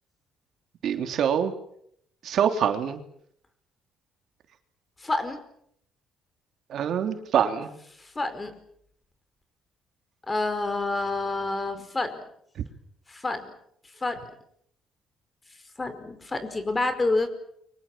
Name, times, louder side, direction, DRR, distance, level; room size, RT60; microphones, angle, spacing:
voice 1, 0.8-1.5 2.2-3.0 6.7-7.8, right 8 dB, 60° right, 7 dB, 3.1 m, -25 dB
voice 2, 5.0-5.4 8.0-8.6 10.3-12.2 13.1-13.5 14.0-14.2 15.8-17.3, left 2 dB, 20° left, 10 dB, 5.0 m, -28 dB
30.0 x 25.0 x 7.5 m, 0.70 s
cardioid pair, 120°, 0 cm